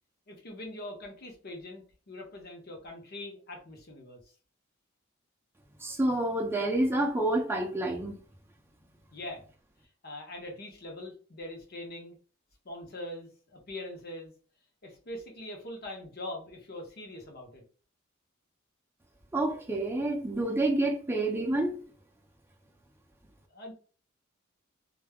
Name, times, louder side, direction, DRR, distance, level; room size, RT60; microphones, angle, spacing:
voice 1, 0.3-4.2 9.1-9.4 10.0-12.2 12.6-14.3 14.8-17.6 23.5-23.7, left 1 dB, 50° left, 0.8 m, -42 dB
voice 2, 5.8-8.2 19.3-21.8, right 1 dB, 10° right, 0.5 m, -28 dB
2.3 x 2.0 x 3.4 m
head